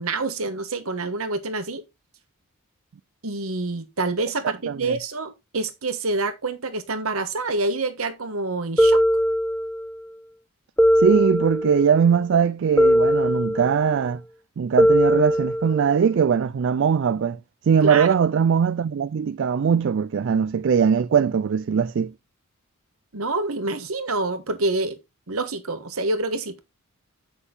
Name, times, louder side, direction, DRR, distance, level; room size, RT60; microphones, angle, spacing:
voice 1, 0.0-1.8 3.2-9.0 17.8-18.1 23.1-25.0 25.3-26.6, right 3 dB, 70° right, 1.3 m, -27 dB
sound 1, 8.8-9.9 10.8-12.0 12.8-13.9 14.8-16.0, equal, 10° left, 1.3 m, -20 dB
voice 2, 11.0-14.2 14.6-17.4 17.6-22.1, right 7 dB, 55° right, 0.3 m, -21 dB
8.0 x 5.9 x 3.8 m
head